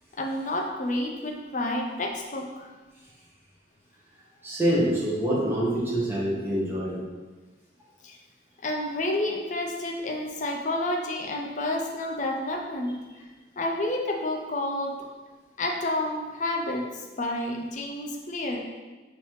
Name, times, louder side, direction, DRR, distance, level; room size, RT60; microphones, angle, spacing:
voice 1, 0.2-2.7 8.0-8.2 8.6-13.0 13.6-14.9 15.6-18.6, left 1 dB, 40° left, 1 dB, 0.6 m, -30 dB
voice 2, 4.4-7.0, right 1 dB, 15° right, -7 dB, 1.1 m, -25 dB
5.6 x 2.9 x 3.2 m, 1.3 s
head